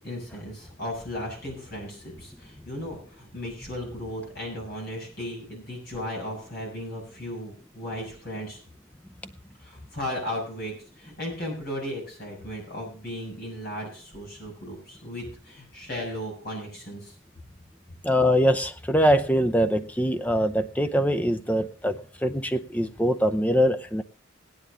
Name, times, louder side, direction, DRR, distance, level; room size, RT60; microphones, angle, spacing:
voice 1, 0.0-8.6 9.6-17.1, left 1 dB, 50° left, -1 dB, 6.5 m, -36 dB
voice 2, 18.0-24.0, equal, 5° left, 7 dB, 0.6 m, -23 dB
16.5 x 10.0 x 3.8 m, 0.41 s
head